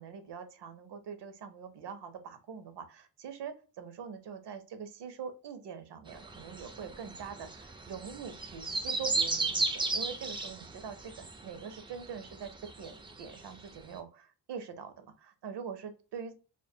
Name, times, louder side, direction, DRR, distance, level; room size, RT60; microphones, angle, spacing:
voice 1, 0.0-12.5 12.8-16.3, right 6 dB, 75° right, 8 dB, 0.6 m, -44 dB
sound 1, 6.1-13.6 13.9-14.0, right 3 dB, 15° right, 0.3 m, -36 dB
2.2 x 2.1 x 2.6 m, 0.35 s
cardioid pair, 55°, 42 cm